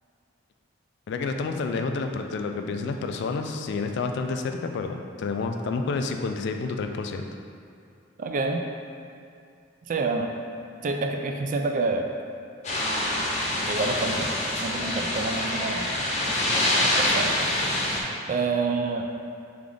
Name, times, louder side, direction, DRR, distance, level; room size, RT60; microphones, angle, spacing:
voice 1, 1.1-7.2, left 4 dB, 60° left, 5 dB, 0.3 m, -29 dB
voice 2, 8.2-8.6 9.9-10.3 10.8-12.1 13.7-14.3 14.6-15.8 16.8-17.3 18.3-19.0, right 3 dB, 45° right, 3 dB, 0.3 m, -27 dB
sound 1, 12.6-18.0, left 1 dB, 40° left, 0.7 m, -26 dB
3.6 x 3.5 x 3.8 m, 2.5 s
head